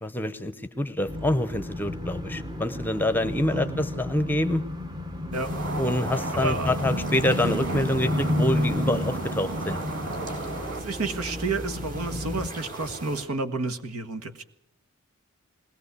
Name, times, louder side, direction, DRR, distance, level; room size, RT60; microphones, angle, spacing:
voice 1, 0.0-4.6 5.8-9.8, left 1 dB, 10° left, 12 dB, 0.8 m, -26 dB
sound 1, 1.1-12.5, left 1 dB, 20° right, 1.0 m, -31 dB
voice 2, 3.2-3.8 5.3-5.5 6.3-6.7 10.7-14.4, right 3 dB, 85° right, 9 dB, 1.6 m, -31 dB
sound 2, 5.3-13.2, right 2 dB, 40° right, 3.9 m, -40 dB
sound 3, 5.4-10.8, right 2 dB, 60° right, 2.4 m, -36 dB
20.5 x 18.0 x 8.3 m, 0.80 s
head